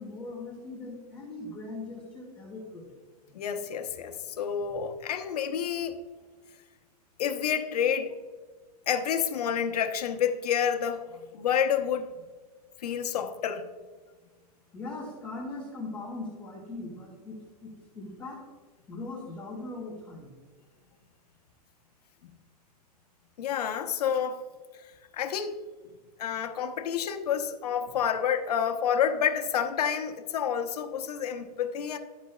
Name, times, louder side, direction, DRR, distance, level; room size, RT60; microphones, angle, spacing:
voice 1, 0.0-2.9 14.7-18.4 18.9-20.3, left 2 dB, 5° left, 1.6 m, -40 dB
voice 2, 3.3-6.0 7.2-8.1 8.9-12.1 12.8-13.7 23.4-24.4 25.1-25.6 26.2-32.0, left 8 dB, 75° left, 0.9 m, -29 dB
12.0 x 5.2 x 2.3 m
supercardioid pair, 175°, 20 cm